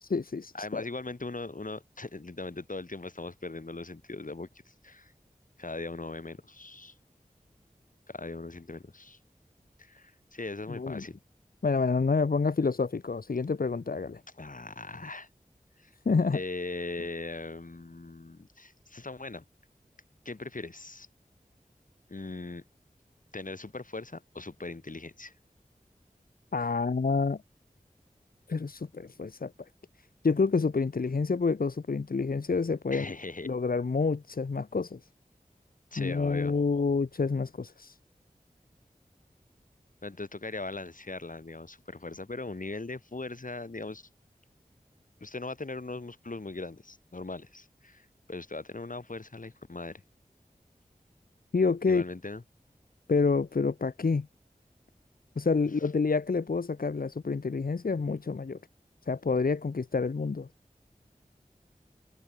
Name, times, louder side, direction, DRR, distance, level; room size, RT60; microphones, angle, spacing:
voice 1, 0.0-0.8 10.7-11.1 11.6-14.2 16.0-16.4 26.5-27.4 28.5-29.5 30.2-33.1 33.4-35.0 36.0-38.0 51.5-52.0 53.1-54.3 55.4-58.6 59.1-60.5, left 4 dB, 85° left, 1.1 m, -28 dB
voice 2, 0.5-5.1 5.6-6.9 8.1-9.2 9.8-11.2 14.4-15.3 15.8-15.9 16.3-19.4 20.2-21.1 22.1-22.6 23.3-25.3 32.9-33.5 35.9-36.5 40.0-44.1 45.2-50.0 51.9-52.4, left 3 dB, 65° left, 6.8 m, -39 dB
wide cardioid pair, 60°, 15 cm